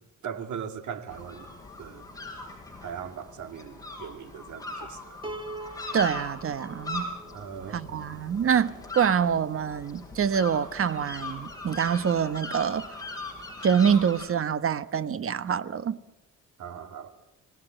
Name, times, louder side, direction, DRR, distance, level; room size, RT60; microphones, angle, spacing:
voice 1, 0.2-1.5 1.8-2.1 2.8-5.2 7.3-7.8 16.6-17.1, right 7 dB, 70° right, 2.6 m, -39 dB
sound 1, 1.1-14.2, left 2 dB, 10° left, 6.3 m, -40 dB
Piano, 5.2-8.5, right 2 dB, 15° right, 2.2 m, -43 dB
voice 2, 5.9-7.1 7.7-12.9 13.6-16.0, right 7 dB, 45° right, 1.2 m, -26 dB
26.0 x 19.0 x 9.0 m
cardioid pair, 90°, 30 cm